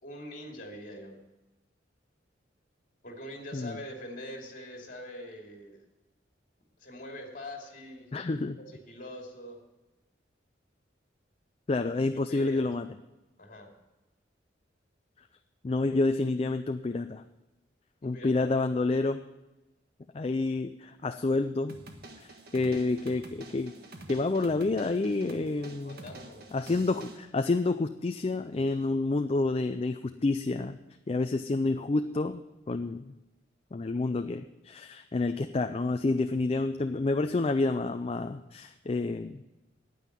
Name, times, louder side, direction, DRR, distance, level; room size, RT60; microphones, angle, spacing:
voice 1, 0.0-1.2 3.0-5.8 6.8-8.1 8.7-9.6 12.3-12.7 13.4-13.7 18.0-18.7 25.8-26.5, left 1 dB, 50° left, 1 dB, 2.7 m, -43 dB
voice 2, 8.1-8.6 11.7-12.9 15.6-17.2 18.0-19.2 20.1-21.8 22.5-23.7 24.1-26.0 26.5-30.8 31.1-32.4 32.7-33.1 33.7-39.4, left 3 dB, 30° left, 8 dB, 0.4 m, -29 dB
sound 1, 21.7-27.2, right 2 dB, 55° right, 1.5 m, -48 dB
9.4 x 9.3 x 9.8 m, 1.0 s
head